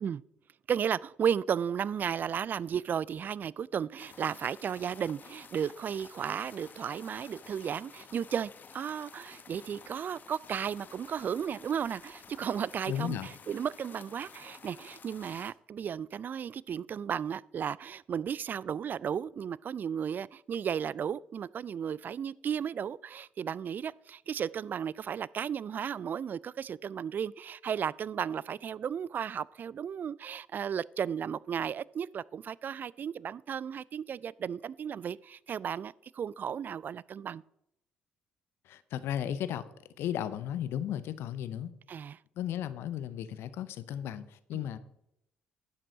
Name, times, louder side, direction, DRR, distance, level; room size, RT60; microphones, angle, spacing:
voice 1, 0.7-37.4 41.9-42.2 44.5-44.7, right 8 dB, 45° right, 0.3 m, -34 dB
sound 1, 4.0-15.5, left 6 dB, 45° left, 1.0 m, -52 dB
voice 2, 12.9-13.3 38.6-39.6 40.0-41.7 42.4-44.8, left 10 dB, 65° left, 0.7 m, -35 dB
11.0 x 7.6 x 3.9 m
hypercardioid pair, 50°, 4 cm